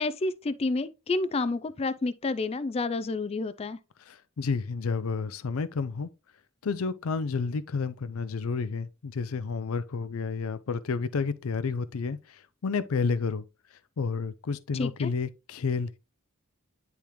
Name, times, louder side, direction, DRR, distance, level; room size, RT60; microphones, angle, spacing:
voice 1, 0.0-3.8 14.7-15.1, left 3 dB, 30° left, 0.4 m, -29 dB
voice 2, 4.1-6.1 6.6-13.4 14.0-16.0, left 4 dB, 80° left, 0.5 m, -30 dB
10.0 x 3.5 x 3.0 m
head